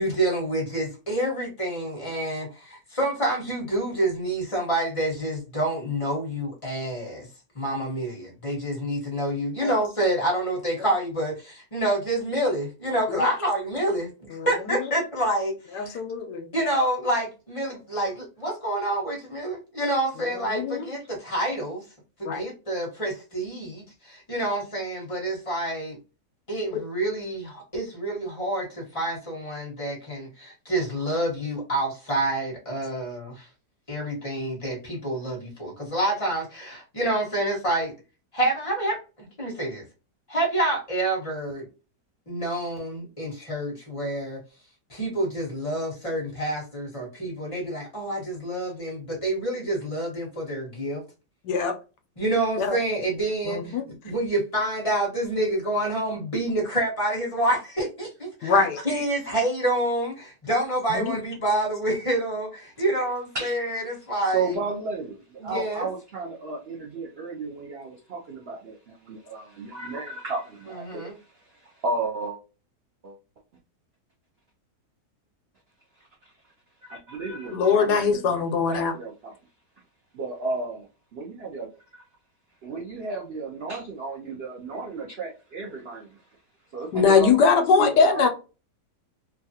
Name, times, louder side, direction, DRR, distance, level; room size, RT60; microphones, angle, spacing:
voice 1, 0.0-7.3 7.5-16.0 16.5-21.8 22.2-26.0 26.5-33.5 33.9-37.9 38.3-39.8 40.3-41.7 42.3-44.4 44.9-51.0 52.2-64.6 65.4-65.9 70.7-71.1, right 1 dB, 20° left, 1.1 m, -28 dB
voice 2, 15.7-16.5 20.5-20.9 22.2-22.5 51.4-51.8 52.6-52.8 53.5-53.9 58.4-58.8 60.9-61.2 77.5-78.9 86.9-88.3, left 5 dB, 80° left, 1.1 m, -22 dB
voice 3, 64.3-65.2 65.4-72.4 73.0-73.2 76.8-79.3 80.1-80.9 81.1-81.7 81.9-82.0 82.6-86.2 86.7-87.3 87.8-88.3, right 3 dB, 75° right, 0.5 m, -33 dB
3.0 x 2.3 x 2.7 m
omnidirectional pair, 1.8 m